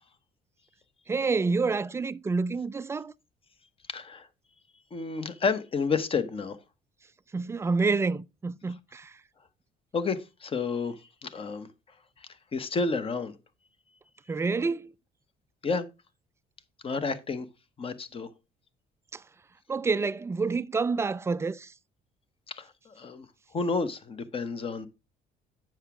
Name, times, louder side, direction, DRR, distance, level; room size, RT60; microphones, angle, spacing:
voice 1, 1.1-3.1 7.3-9.1 14.3-14.9 19.1-19.2 19.7-21.7, right 4 dB, 15° right, 0.3 m, -28 dB
voice 2, 3.9-4.3 4.9-6.6 9.9-10.9 11.2-11.7 12.5-13.3 15.6-15.9 16.8-17.5 17.8-18.3 22.6-23.2 23.5-24.9, left 4 dB, 35° left, 0.9 m, -30 dB
7.9 x 5.9 x 3.6 m
cardioid pair, 110°, 17 cm